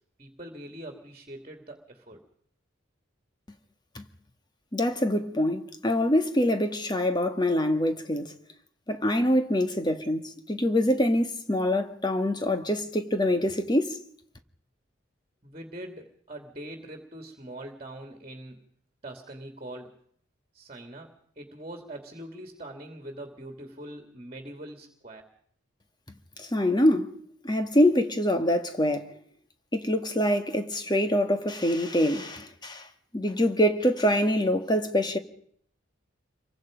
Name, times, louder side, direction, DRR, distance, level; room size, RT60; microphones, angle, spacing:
voice 1, 0.2-2.2 15.4-18.6 19.0-19.9 20.5-25.2, right 1 dB, 30° right, 2.6 m, -43 dB
voice 2, 4.7-8.3 8.9-14.0 26.4-27.1 27.4-29.2 29.7-32.9 33.1-35.2, left 1 dB, 20° left, 1.7 m, -25 dB
28.0 x 23.5 x 5.2 m
head